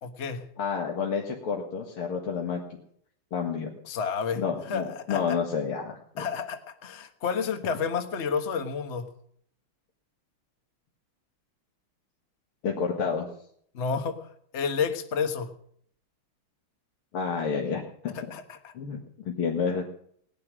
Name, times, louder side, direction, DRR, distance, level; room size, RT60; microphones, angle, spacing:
voice 1, 0.0-0.4 3.8-5.4 6.2-9.1 13.7-14.2 14.5-15.5 18.3-18.6, left 6 dB, 35° left, 6 dB, 1.4 m, -30 dB
voice 2, 0.6-2.6 3.3-3.7 4.4-6.0 12.6-13.3 17.1-18.1 18.7-19.0 19.3-19.8, left 6 dB, 75° left, -1 dB, 2.6 m, -29 dB
19.0 x 11.0 x 6.2 m, 0.65 s
omnidirectional pair, 2.4 m